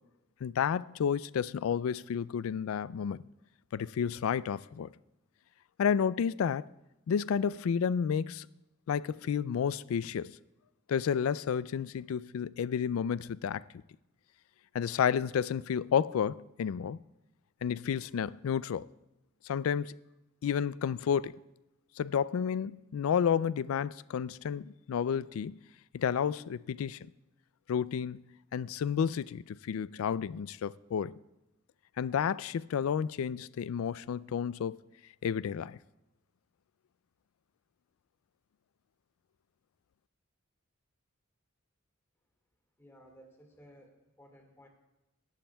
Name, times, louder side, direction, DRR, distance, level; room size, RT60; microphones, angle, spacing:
voice 1, 0.4-3.2 3.7-4.9 5.8-6.7 7.1-8.5 8.9-10.4 10.9-13.6 14.7-17.0 17.6-18.9 19.4-20.0 20.4-21.3 22.0-25.6 25.9-27.1 27.7-28.2 28.5-31.2 32.0-34.8 35.2-35.8, left 7 dB, 80° left, 0.3 m, -31 dB
voice 2, 42.8-44.7, equal, 15° left, 1.9 m, -57 dB
22.0 x 11.5 x 2.3 m
head